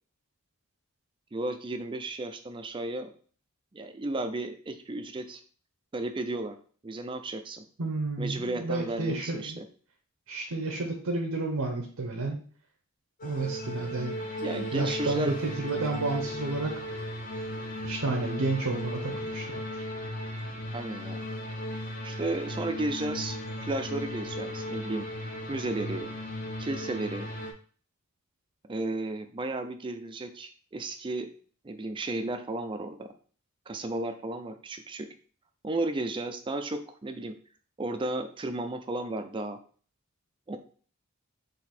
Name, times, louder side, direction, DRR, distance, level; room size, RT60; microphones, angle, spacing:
voice 1, 1.3-3.1 3.7-5.4 5.9-6.6 6.8-7.7 8.2-9.7 14.4-15.4 20.7-21.2 22.0-23.4 23.6-25.1 25.5-26.1 26.6-27.3 28.7-31.3 31.6-33.1 33.7-35.1 35.6-37.4 37.8-39.6 40.5-40.6, right 2 dB, 20° right, 7 dB, 0.4 m, -33 dB
voice 2, 7.8-9.6 10.3-12.4 13.2-14.2 14.7-17.0 17.8-19.6, right 3 dB, 80° right, 2 dB, 0.7 m, -31 dB
sound 1, 13.2-27.5, equal, 35° left, 0.6 m, -36 dB
3.9 x 2.7 x 4.2 m, 0.43 s
head